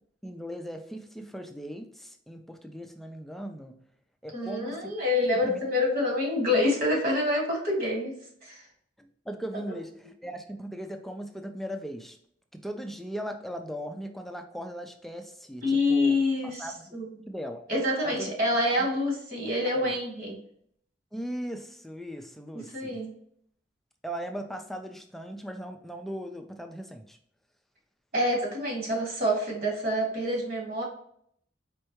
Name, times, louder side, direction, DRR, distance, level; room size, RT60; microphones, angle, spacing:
voice 1, 0.2-3.7 4.2-4.9 5.4-5.6 9.0-12.2 12.5-16.2 16.4-16.9 17.3-17.6 18.0-18.3 19.7-19.9 21.1-23.0 24.0-27.2, equal, ahead, 5 dB, 0.3 m, -38 dB
voice 2, 4.3-8.1 8.4-8.6 15.6-16.7 16.9-17.1 17.7-20.4 22.7-23.1 28.1-30.8, left 1 dB, 55° right, -1 dB, 1.7 m, -27 dB
4.4 x 3.3 x 3.0 m, 0.66 s
head